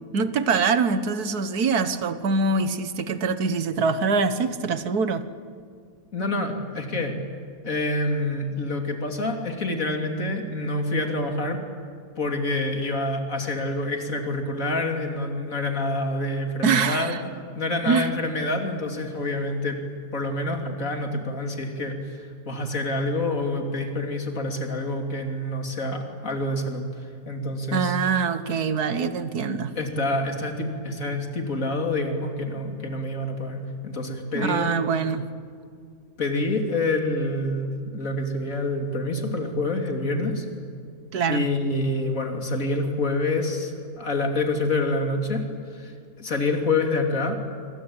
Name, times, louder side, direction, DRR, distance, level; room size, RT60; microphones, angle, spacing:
voice 1, 0.1-5.3 16.6-17.2 17.9-18.1 27.7-29.7 34.4-35.3 41.1-41.5, right 4 dB, 85° right, 12 dB, 1.8 m, -24 dB
voice 2, 6.1-7.1 7.6-11.6 12.2-17.2 17.6-19.8 20.1-27.9 29.8-34.7 36.2-40.4 41.3-45.4 45.7-47.3, left 2 dB, 60° left, 4 dB, 3.4 m, -27 dB
26.5 x 25.0 x 8.9 m, 2.2 s
omnidirectional pair, 1.6 m